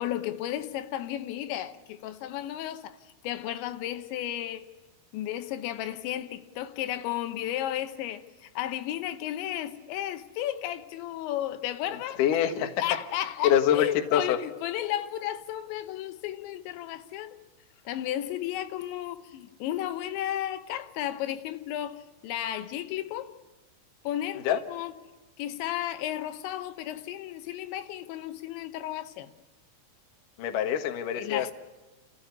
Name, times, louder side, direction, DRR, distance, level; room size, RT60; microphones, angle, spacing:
voice 1, 0.0-3.0 3.2-4.7 5.1-12.2 12.8-17.4 17.9-23.3 24.0-25.0 25.4-29.3 31.1-31.5, left 12 dB, 85° left, 3.2 m, -33 dB
voice 2, 12.2-12.7 13.4-14.4 24.4-24.6 30.4-31.5, left 10 dB, 60° left, 2.5 m, -24 dB
30.0 x 14.0 x 9.6 m
omnidirectional pair, 5.1 m